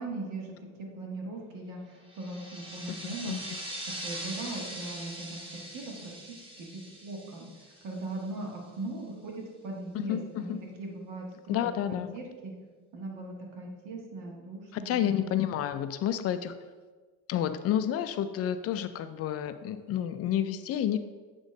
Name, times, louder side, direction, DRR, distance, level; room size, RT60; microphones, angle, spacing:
voice 1, 0.0-3.4 3.8-7.5 7.8-11.7 12.1-12.5 12.9-15.0, right 2 dB, 75° right, 0 dB, 1.7 m, -39 dB
sound 1, 2.1-8.4, right 1 dB, 15° right, 1.3 m, -42 dB
voice 2, 3.0-3.4 9.9-10.7 11.5-12.2 14.7-16.5 17.3-21.0, left 10 dB, 50° left, 11 dB, 0.4 m, -30 dB
8.2 x 3.1 x 5.1 m, 1.4 s
cardioid pair, 125°, 32 cm